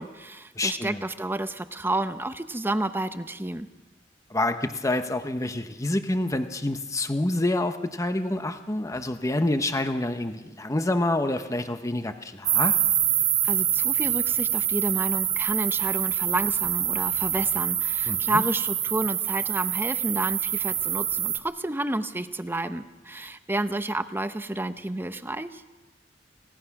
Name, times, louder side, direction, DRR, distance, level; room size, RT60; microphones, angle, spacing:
voice 1, 0.0-3.7 13.4-25.6, right 1 dB, 10° right, 10 dB, 0.8 m, -30 dB
voice 2, 0.6-1.0 4.3-12.8 18.1-18.4, left 1 dB, 20° left, 8 dB, 0.9 m, -27 dB
sound 1, 12.5-21.4, right 10 dB, 35° right, 1.5 m, -26 dB
29.5 x 17.0 x 5.9 m, 1.2 s
head